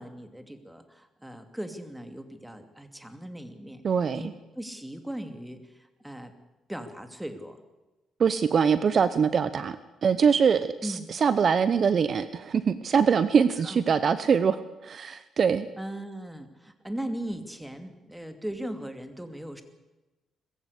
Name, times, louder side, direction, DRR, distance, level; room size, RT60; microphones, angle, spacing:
voice 1, 0.0-3.8 4.1-6.3 6.7-7.6 10.8-11.1 13.6-13.8 15.8-19.6, right 1 dB, 5° right, 8 dB, 2.6 m, -38 dB
voice 2, 3.8-4.2 8.2-9.8 10.0-15.7, right 6 dB, 50° right, 13 dB, 0.9 m, -23 dB
21.0 x 15.0 x 8.4 m, 1.1 s
cardioid pair, 90°, 0 cm